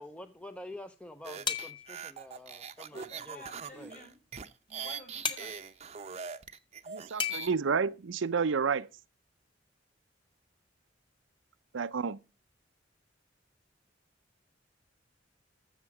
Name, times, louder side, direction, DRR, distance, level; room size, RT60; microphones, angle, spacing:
voice 1, 0.0-3.4 3.8-4.1, left 1 dB, 5° left, 0.6 m, -47 dB
sound 1, 1.2-7.5, right 6 dB, 35° right, 0.7 m, -42 dB
sound 2, 1.5-2.0 5.2-5.5 7.2-7.5, left 6 dB, 25° left, 1.1 m, -33 dB
voice 2, 2.9-4.2 4.7-5.7, left 1 dB, 40° left, 6.7 m, -51 dB
voice 3, 6.9-8.9 11.7-12.2, right 5 dB, 85° right, 0.6 m, -30 dB
13.0 x 7.3 x 4.8 m
head